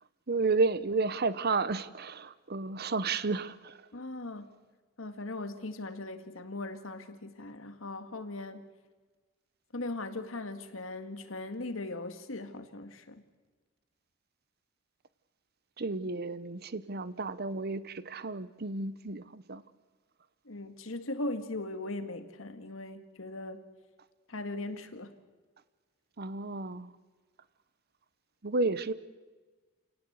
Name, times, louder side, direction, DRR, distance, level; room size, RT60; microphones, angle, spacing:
voice 1, 0.3-3.8 15.8-19.6 26.2-26.9 28.4-28.9, right 3 dB, 50° right, 15 dB, 0.9 m, -32 dB
voice 2, 3.9-4.6 5.0-8.7 9.7-13.2 20.5-23.6 24.3-25.1, left 2 dB, 85° left, 8 dB, 1.9 m, -39 dB
28.0 x 18.0 x 8.1 m, 1.3 s
head